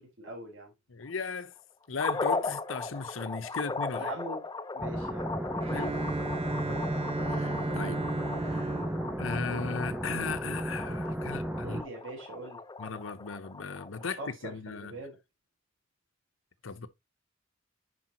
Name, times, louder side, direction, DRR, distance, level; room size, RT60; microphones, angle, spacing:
voice 1, 0.0-0.7 4.0-4.5 4.7-5.8 11.2-12.6 14.0-15.2, right 1 dB, 75° right, 4.1 m, -43 dB
voice 2, 0.9-1.5 1.9-4.1 5.7-6.0 7.3-8.1 8.4-8.7 9.2-11.8 12.8-15.0 16.6-16.9, left 4 dB, 80° left, 0.8 m, -36 dB
sound 1, 2.0-14.2, left 3 dB, 20° left, 0.7 m, -37 dB
sound 2, 4.8-11.8, right 1 dB, 10° right, 0.4 m, -34 dB
Bowed string instrument, 5.6-10.4, right 3 dB, 30° right, 0.8 m, -36 dB
10.0 x 4.8 x 2.9 m
head